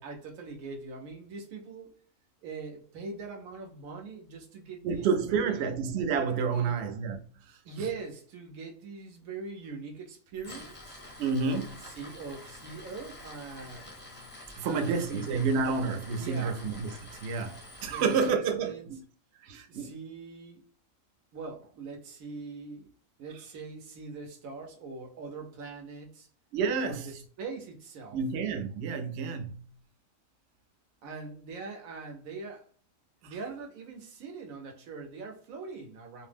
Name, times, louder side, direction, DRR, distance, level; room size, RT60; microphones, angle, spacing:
voice 1, 0.0-2.0 2.4-5.7 6.5-6.8 7.6-11.0 11.4-13.9 14.6-15.3 16.2-16.6 17.9-18.9 19.7-20.6 21.3-22.9 23.2-26.3 26.8-28.2 31.0-32.7 33.2-36.3, right 4 dB, 80° right, 1.1 m, -42 dB
voice 2, 4.8-7.6 11.2-11.7 14.6-19.0 19.4-19.9 26.5-27.2 28.1-29.7 33.2-33.4, right 5 dB, 65° right, 0.7 m, -30 dB
Tools, 10.3-18.3, left 1 dB, 15° left, 0.3 m, -47 dB
2.6 x 2.0 x 3.3 m
omnidirectional pair, 1.4 m